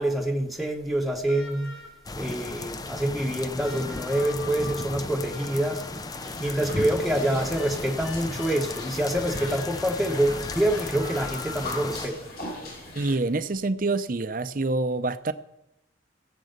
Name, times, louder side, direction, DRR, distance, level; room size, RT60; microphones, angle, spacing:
voice 1, 0.0-1.8 2.2-5.8 6.4-12.2, right 1 dB, ahead, 0 dB, 0.9 m, -26 dB
sound 1, 1.3-2.2 3.6-6.2 7.6-12.0 13.4-13.5, left 4 dB, 75° left, 3.1 m, -44 dB
sound 2, 2.0-12.1, left 3 dB, 20° left, 0.5 m, -35 dB
sound 3, 6.1-13.1, left 2 dB, 50° left, 4.7 m, -40 dB
voice 2, 13.0-15.3, right 2 dB, 45° right, 12 dB, 0.6 m, -26 dB
16.0 x 7.6 x 6.6 m, 0.89 s
head